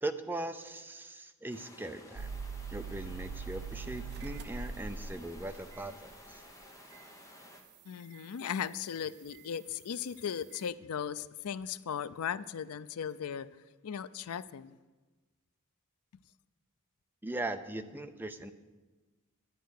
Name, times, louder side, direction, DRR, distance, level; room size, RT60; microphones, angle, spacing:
voice 1, 0.0-2.3 2.7-6.4 17.2-18.5, right 2 dB, 10° right, 8 dB, 0.5 m, -39 dB
sound 1, 1.5-7.6, left 2 dB, 15° left, 1.2 m, -54 dB
sound 2, 2.2-6.4 6.9-7.0 9.3-9.4, right 5 dB, 50° right, 0.6 m, -41 dB
voice 2, 7.9-13.5 13.8-14.8, left 8 dB, 85° left, 16 dB, 0.4 m, -37 dB
11.0 x 9.2 x 6.5 m, 1.2 s
head